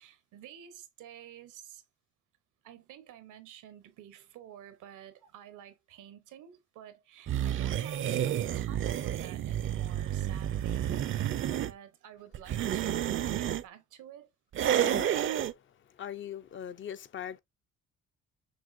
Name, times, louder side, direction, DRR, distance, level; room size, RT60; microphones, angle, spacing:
voice 1, 0.0-1.8 2.6-14.3, right 10 dB, 85° right, 0.9 m, -51 dB
sound 1, 7.3-11.7 12.3-13.6 14.5-15.5, right 10 dB, 45° right, 0.4 m, -30 dB
voice 2, 14.7-17.4, left 9 dB, 40° left, 0.4 m, -42 dB
6.1 x 2.5 x 2.4 m
cardioid pair, 90°, 30 cm